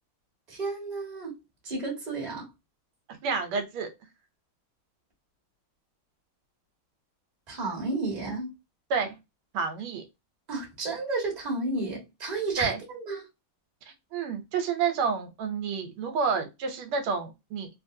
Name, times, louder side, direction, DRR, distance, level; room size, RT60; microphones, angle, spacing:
voice 1, 0.5-1.4 1.6-2.5 7.5-8.5 10.5-13.3, right 3 dB, 25° right, 1.2 m, -32 dB
voice 2, 3.2-3.9 8.9-9.1 9.5-10.0 12.6-12.8 14.1-17.7, right 5 dB, 85° right, 1.6 m, -29 dB
3.4 x 2.6 x 2.6 m
omnidirectional pair, 2.3 m